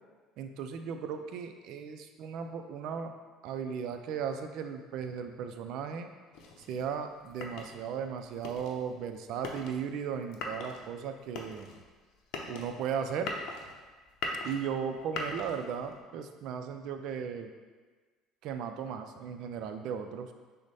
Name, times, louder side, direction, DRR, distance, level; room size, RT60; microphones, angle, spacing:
voice 1, 0.4-3.1 3.4-6.1 6.7-11.7 12.5-13.3 14.4-17.5 18.4-20.3, right 7 dB, 65° right, 7 dB, 0.4 m, -36 dB
sound 1, 6.3-16.0, left 3 dB, 70° left, 0.6 m, -41 dB
6.1 x 2.1 x 4.1 m, 1.4 s
supercardioid pair, 95°, 0 cm